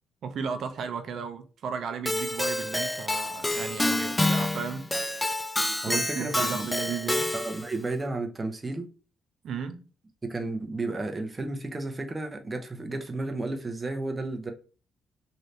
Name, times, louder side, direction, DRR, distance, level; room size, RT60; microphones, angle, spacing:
voice 1, 0.2-4.9 5.9-7.3 9.4-9.8, right 6 dB, 65° right, 0.6 m, -34 dB
Keyboard (musical), 2.1-7.7, left 1 dB, 10° left, 0.3 m, -28 dB
voice 2, 5.8-6.7 7.3-8.9 10.3-14.5, right 2 dB, 25° right, 0.7 m, -32 dB
3.3 x 2.6 x 2.7 m
cardioid pair, 90°, 0 cm